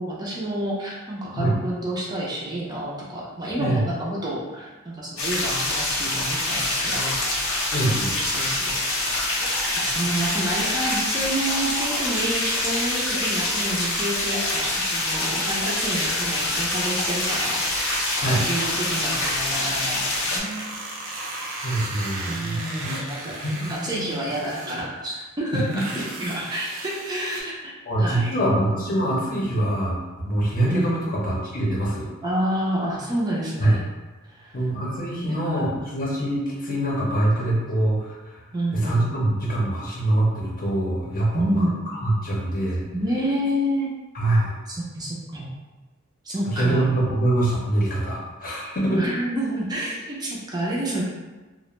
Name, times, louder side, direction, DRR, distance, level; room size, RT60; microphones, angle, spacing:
voice 1, 0.0-7.7 8.1-9.3 9.7-17.6 17.9-18.0 18.4-20.8 22.2-25.9 26.2-27.5 28.0-28.4 30.7-31.0 32.2-33.9 34.2-34.6 35.2-35.8 38.5-39.3 41.3-41.8 42.9-43.9 44.7-45.5 46.2-46.9 48.9-51.0, right 1 dB, 20° right, -5 dB, 0.4 m, -29 dB
sound 1, 5.2-20.4, left 2 dB, 85° left, 0.6 m, -25 dB
voice 2, 7.7-8.1 18.2-18.4 21.6-23.0 23.4-24.2 25.5-25.6 27.9-32.1 33.6-33.8 34.5-38.4 38.7-41.7 42.0-42.8 44.1-44.6 46.5-49.0, right 1 dB, 45° left, -5 dB, 0.7 m, -24 dB
sound 2, 16.5-16.8 17.1-19.4 20.1-24.9 25.4-27.4, right 2 dB, 75° right, 0.6 m, -35 dB
2.4 x 2.1 x 3.0 m, 1.2 s
head